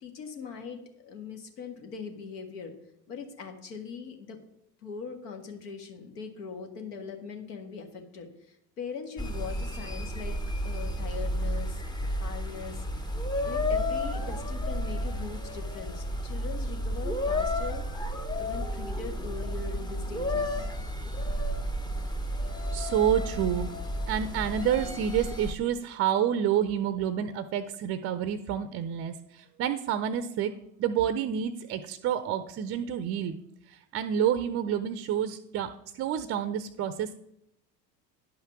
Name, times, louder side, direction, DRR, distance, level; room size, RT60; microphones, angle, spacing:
voice 1, 0.0-2.7 3.1-4.4 4.8-10.4 10.6-11.8 12.2-12.9 13.5-17.9 18.4-20.7, left 5 dB, 70° left, 5 dB, 1.7 m, -41 dB
sound 1, 9.2-25.5, left 1 dB, 10° left, 0.7 m, -32 dB
voice 2, 22.7-23.7 24.1-30.5 30.8-33.4 33.7-37.1, right 9 dB, 30° right, 12 dB, 0.5 m, -29 dB
10.5 x 5.6 x 5.9 m, 0.79 s
figure-of-eight pair, 75°, 50 cm